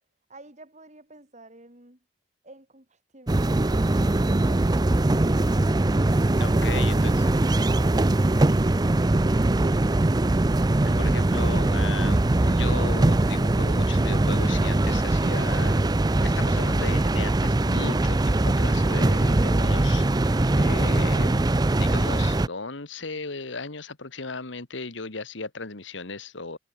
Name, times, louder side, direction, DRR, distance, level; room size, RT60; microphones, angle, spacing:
voice 1, 0.3-2.0 2.4-5.5, right 2 dB, 40° right, 6.3 m, -49 dB
sound 1, 3.3-22.5, right 2 dB, 20° right, 0.5 m, -22 dB
voice 2, 6.4-7.3 10.8-15.8 16.2-21.4 21.8-26.6, left 4 dB, 75° left, 1.8 m, -36 dB
head